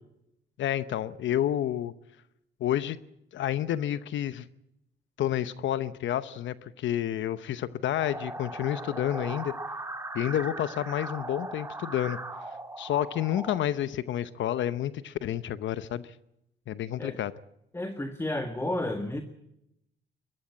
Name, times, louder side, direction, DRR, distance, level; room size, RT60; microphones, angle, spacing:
voice 1, 0.6-1.9 2.6-3.0 3.3-4.4 5.2-9.5 10.1-12.2 12.8-16.1 16.7-17.3, left 11 dB, 70° left, 15 dB, 0.8 m, -29 dB
sound 1, 8.0-13.6, right 2 dB, 15° right, 2.5 m, -39 dB
voice 2, 17.7-19.2, left 1 dB, 15° left, 7 dB, 1.8 m, -31 dB
22.0 x 13.0 x 9.7 m, 0.82 s
cardioid pair, 90°, 20 cm